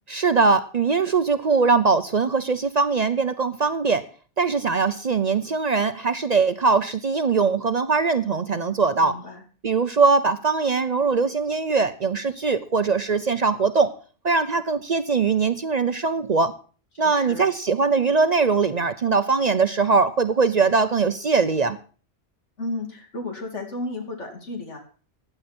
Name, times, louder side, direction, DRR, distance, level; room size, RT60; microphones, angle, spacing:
voice 1, 0.1-4.0 4.4-9.2 9.6-13.9 14.2-16.5 17.0-21.8, right 4 dB, 45° right, 12 dB, 0.6 m, -21 dB
voice 2, 9.0-9.4 17.0-17.5 22.6-24.8, left 2 dB, 85° left, 3 dB, 3.1 m, -33 dB
15.5 x 9.9 x 4.3 m, 0.39 s
omnidirectional pair, 1.2 m